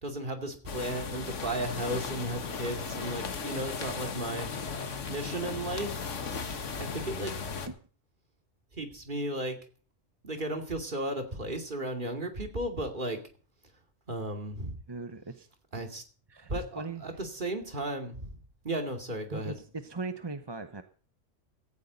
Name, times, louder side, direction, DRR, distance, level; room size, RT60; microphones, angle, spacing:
voice 1, 0.0-4.5 5.1-6.1 6.8-7.3 8.7-9.6 10.2-13.2 14.1-14.8 15.7-16.0 16.5-18.3 18.6-19.5, right 1 dB, 40° right, 4 dB, 2.7 m, -34 dB
sound 1, 0.7-7.7, left 5 dB, 75° left, 1.7 m, -36 dB
voice 2, 14.9-15.5 16.3-17.0 19.3-20.8, right 3 dB, 25° right, 8 dB, 0.8 m, -39 dB
17.5 x 14.5 x 4.1 m, 0.40 s
omnidirectional pair, 1.3 m